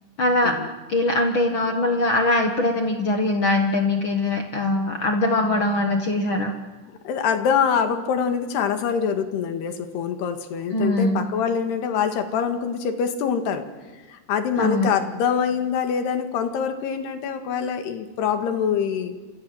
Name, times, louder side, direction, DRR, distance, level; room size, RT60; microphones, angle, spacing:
voice 1, 0.2-0.6 0.9-6.5 10.7-11.3 14.6-14.9, left 2 dB, 60° left, 4 dB, 1.3 m, -22 dB
voice 2, 7.1-13.7 14.1-19.1, left 7 dB, 85° left, 7 dB, 3.9 m, -24 dB
27.5 x 27.0 x 7.8 m, 1.3 s
omnidirectional pair, 4.6 m